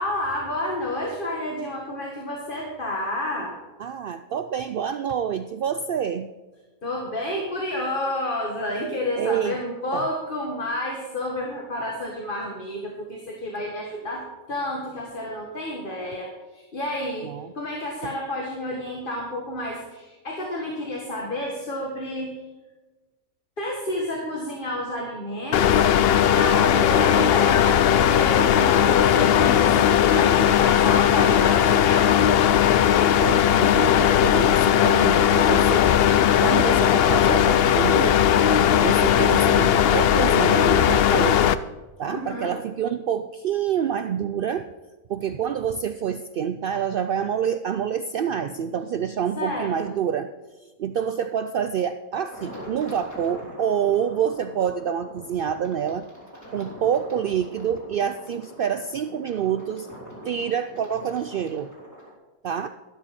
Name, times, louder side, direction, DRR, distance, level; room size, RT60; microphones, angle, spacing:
voice 1, 0.0-3.5 6.8-22.4 23.6-26.0 26.3-32.1 42.1-42.5 49.4-49.9, left 1 dB, 35° left, -1 dB, 1.8 m, -30 dB
voice 2, 3.8-6.3 9.2-9.6 9.9-10.1 17.2-17.5 18.0-18.1 33.2-35.9 36.4-38.2 38.8-41.4 42.0-44.6 45.1-50.3 50.8-56.1 56.5-59.9 60.2-61.7 62.4-62.7, right 8 dB, 80° right, 9 dB, 0.4 m, -27 dB
sound 1, 25.5-41.6, left 9 dB, 65° left, 0.6 m, -18 dB
sound 2, 52.3-62.1, equal, 10° left, 3.3 m, -43 dB
12.5 x 12.0 x 4.3 m, 1.2 s
omnidirectional pair, 1.5 m